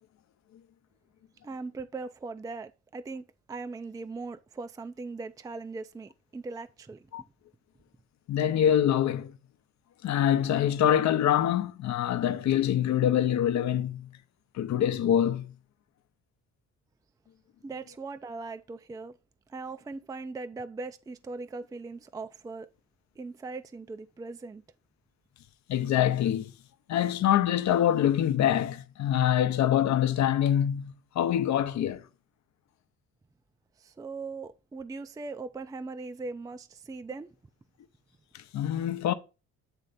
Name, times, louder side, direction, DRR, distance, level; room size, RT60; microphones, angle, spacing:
voice 1, 1.4-7.3 17.6-19.2 19.5-22.7 23.2-24.6 33.8-37.3, right 3 dB, 10° right, 0.4 m, -40 dB
voice 2, 8.3-9.3 10.0-14.1 14.5-15.5 25.7-26.5 26.9-32.0 38.3-39.1, left 10 dB, 65° left, 0.7 m, -25 dB
9.0 x 3.2 x 4.0 m
cardioid pair, 90°, 30 cm